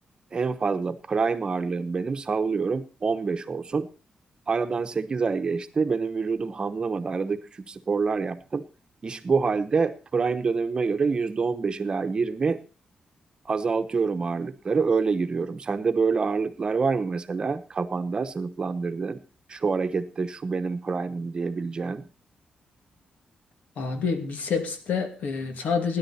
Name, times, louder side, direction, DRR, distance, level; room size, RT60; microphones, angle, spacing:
voice 1, 0.3-3.9 4.5-8.7 9.0-12.6 13.4-19.2 19.5-22.1, right 4 dB, 35° right, 9 dB, 0.9 m, -26 dB
voice 2, 23.8-26.0, left 5 dB, 90° left, 6 dB, 2.5 m, -27 dB
17.5 x 10.5 x 4.2 m, 0.34 s
wide cardioid pair, 140°, 3 cm